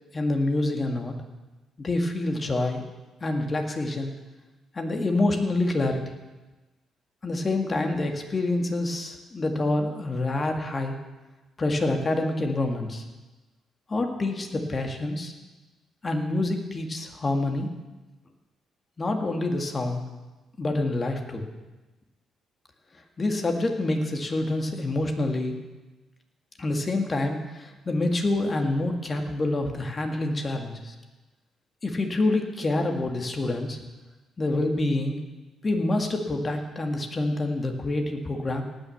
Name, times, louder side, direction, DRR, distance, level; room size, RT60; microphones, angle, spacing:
voice 1, 0.1-1.1 1.8-2.8 3.2-4.1 4.7-6.0 7.2-10.9 11.6-13.0 13.9-15.3 16.0-17.7 19.0-20.0 20.6-21.4 23.2-25.6 26.6-30.9 31.8-33.8 34.4-35.2 35.6-38.6, left 2 dB, 30° left, 4 dB, 2.1 m, -27 dB
18.5 x 6.5 x 7.3 m, 1.1 s
cardioid pair, 90°, 0 cm